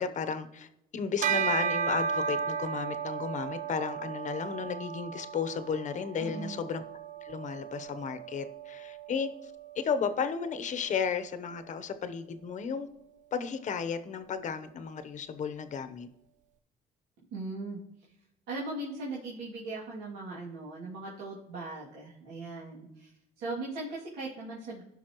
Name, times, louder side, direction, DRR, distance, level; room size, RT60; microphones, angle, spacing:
voice 1, 0.0-6.8 7.2-9.5 9.8-12.9 13.3-16.1, left 6 dB, 45° left, 0.9 m, -34 dB
Bell, 1.2-10.9, right 6 dB, 50° right, 0.4 m, -35 dB
voice 2, 6.2-6.7 17.3-18.1 18.5-24.8, right 2 dB, 80° right, 2.5 m, -39 dB
16.0 x 5.7 x 3.0 m
cardioid pair, 110°, 17 cm